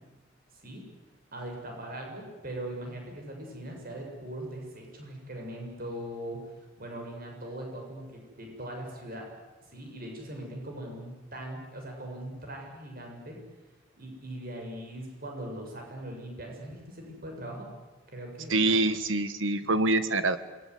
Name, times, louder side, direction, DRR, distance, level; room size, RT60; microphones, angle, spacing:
voice 1, 1.3-6.4 6.8-9.3 9.7-13.4 14.0-17.7 18.1-18.8 19.6-19.9, right 1 dB, 50° right, 1 dB, 7.2 m, -40 dB
voice 2, 18.5-20.4, right 2 dB, 80° right, 11 dB, 1.8 m, -25 dB
27.5 x 22.0 x 9.7 m, 1.2 s
head